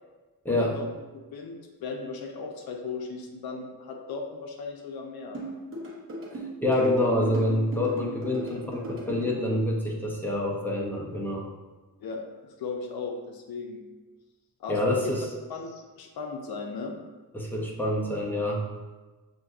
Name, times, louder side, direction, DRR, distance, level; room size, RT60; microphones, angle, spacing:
voice 1, 0.5-0.9 1.3-5.4 12.0-13.8 14.6-15.1 15.5-16.9, left 4 dB, 75° left, 3 dB, 0.6 m, -36 dB
sound 1, 5.3-9.3, right 1 dB, 35° right, 0.9 m, -37 dB
voice 2, 6.3-11.4 14.7-15.2 17.3-18.6, left 1 dB, 5° left, -3 dB, 0.5 m, -27 dB
6.1 x 2.6 x 2.4 m, 1.2 s
wide cardioid pair, 165°, 36 cm